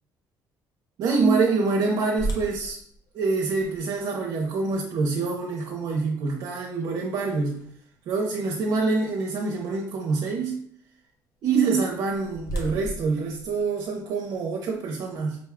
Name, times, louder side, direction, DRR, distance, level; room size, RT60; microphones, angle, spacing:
voice 1, 1.0-2.8 3.1-7.6 8.1-10.6 11.4-15.4, right 4 dB, 65° right, -1 dB, 0.6 m, -25 dB
sound 1, 2.2-8.1 8.7-8.8 9.4-9.6 11.7-14.3, right 2 dB, 55° left, 0.8 m, -37 dB
5.1 x 2.2 x 3.4 m, 0.66 s
cardioid pair, 145°, 7 cm